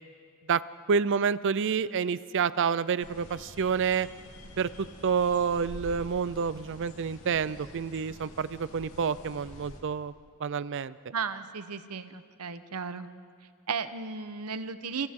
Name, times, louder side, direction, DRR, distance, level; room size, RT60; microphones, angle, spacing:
voice 1, 0.9-4.1 4.6-10.1 10.4-11.0, right 6 dB, 55° right, 17 dB, 0.5 m, -28 dB
sound 1, 3.0-9.8, left 1 dB, 65° left, 2.9 m, -47 dB
voice 2, 11.1-13.1 13.7-15.1, right 5 dB, 85° right, 11 dB, 1.0 m, -35 dB
29.5 x 28.0 x 3.7 m, 2.1 s
head